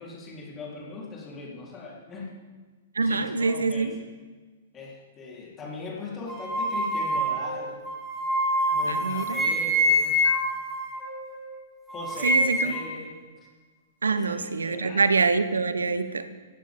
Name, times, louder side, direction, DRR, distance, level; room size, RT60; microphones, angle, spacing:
voice 1, 0.0-2.4 3.1-3.9 4.7-7.8 8.7-10.2 11.9-13.2 14.1-15.0, left 3 dB, 20° left, -4 dB, 4.3 m, -40 dB
voice 2, 2.9-3.9 8.8-9.5 12.2-12.7 14.0-16.3, right 4 dB, 75° right, 13 dB, 0.9 m, -25 dB
sound 1, 6.3-11.6 11.9-13.0, equal, ahead, 2.9 m, -26 dB
17.0 x 13.5 x 3.9 m, 1.4 s
figure-of-eight pair, 110°, 0 cm